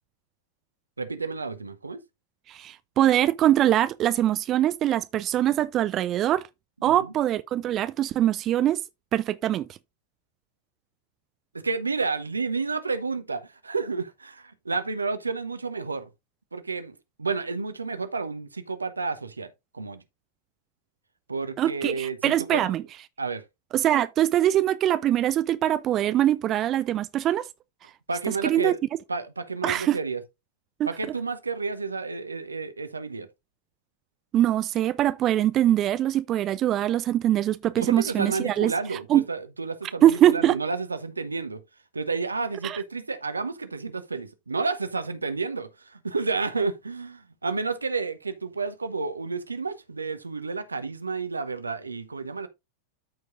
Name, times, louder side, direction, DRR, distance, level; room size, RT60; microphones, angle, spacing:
voice 1, 1.0-2.0 6.8-7.1 11.5-16.1 16.5-20.0 21.3-22.8 23.2-23.4 28.1-28.8 29.1-30.2 30.9-33.3 37.8-41.6 41.9-52.5, right 4 dB, 80° right, 1.0 m, -31 dB
voice 2, 2.5-6.5 6.8-8.8 9.1-9.7 21.6-22.8 23.7-27.5 28.4-28.7 29.6-30.0 30.8-30.9 34.3-38.7 39.1-39.2 40.0-40.6 42.6-42.8, right 12 dB, 30° right, 0.5 m, -23 dB
13.5 x 4.7 x 2.5 m
figure-of-eight pair, 90°, 0 cm